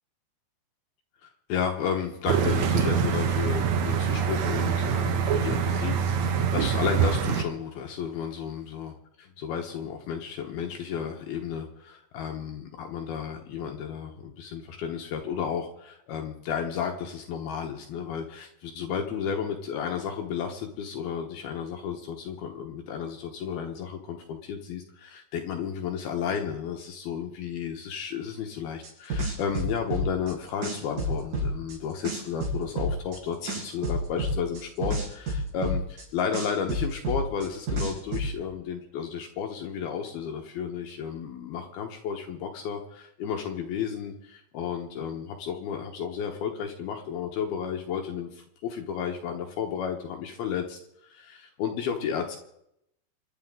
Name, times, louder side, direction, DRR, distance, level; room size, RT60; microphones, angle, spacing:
voice 1, 1.2-8.9 9.2-52.4, left 7 dB, 70° left, 3 dB, 2.8 m, -33 dB
sound 1, 2.3-7.4, right 7 dB, 90° right, 1.6 m, -25 dB
sound 2, 28.8-30.3 30.6-31.8 32.1-33.2 33.5-36.0 36.3-38.3, equal, 50° right, 6.9 m, -29 dB
27.5 x 11.0 x 3.8 m, 0.77 s
omnidirectional pair, 5.0 m